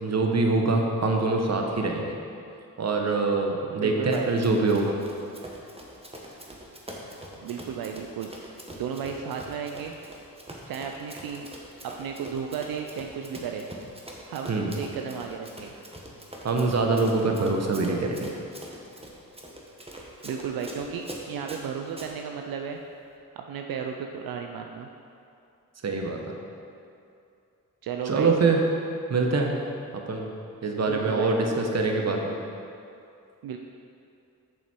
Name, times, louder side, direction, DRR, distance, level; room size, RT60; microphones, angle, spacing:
voice 1, 0.0-2.2 2.8-5.0 14.5-14.7 16.4-18.4 25.8-26.2 28.1-28.6 29.1-29.5 29.9-30.3 30.6-32.4, right 3 dB, 50° right, 2 dB, 1.1 m, -24 dB
voice 2, 3.8-4.3 7.4-8.3 8.8-9.9 10.7-11.5 11.8-13.7 14.3-15.7 20.2-22.8 23.4-24.9 27.8-28.3 30.9-31.3 33.4-33.6, right 7 dB, 85° right, 3 dB, 0.5 m, -34 dB
Run, 4.1-22.1, right 1 dB, 15° right, 1.2 m, -44 dB
7.1 x 6.2 x 4.4 m, 2.5 s
cardioid pair, 65°, 34 cm